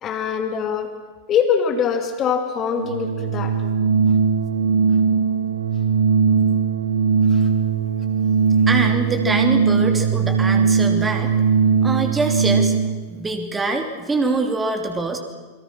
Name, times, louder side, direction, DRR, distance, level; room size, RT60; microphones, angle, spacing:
voice 1, 0.0-0.9 1.3-3.5 7.3-7.4, left 7 dB, 30° left, 5 dB, 2.7 m, -23 dB
Organ, 2.7-13.0, right 6 dB, 70° right, 1.3 m, -19 dB
voice 2, 8.7-11.3 11.8-12.8 13.1-15.2, right 3 dB, 15° right, 4 dB, 3.1 m, -24 dB
28.0 x 23.0 x 6.0 m, 1.3 s
figure-of-eight pair, 90°, 0 cm